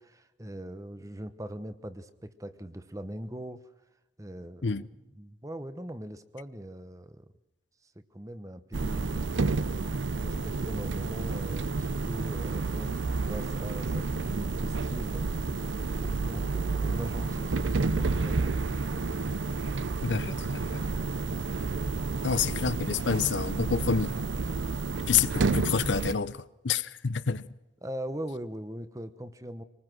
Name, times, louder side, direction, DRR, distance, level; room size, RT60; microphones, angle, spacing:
voice 1, 0.0-3.6 4.2-7.3 7.8-18.5 27.8-29.6, right 1 dB, 15° right, 1.0 m, -41 dB
sound 1, 8.7-26.1, right 3 dB, 80° right, 0.6 m, -30 dB
voice 2, 20.0-20.8 22.2-24.2 25.1-27.5, left 6 dB, 75° left, 0.7 m, -28 dB
24.5 x 19.5 x 6.2 m
head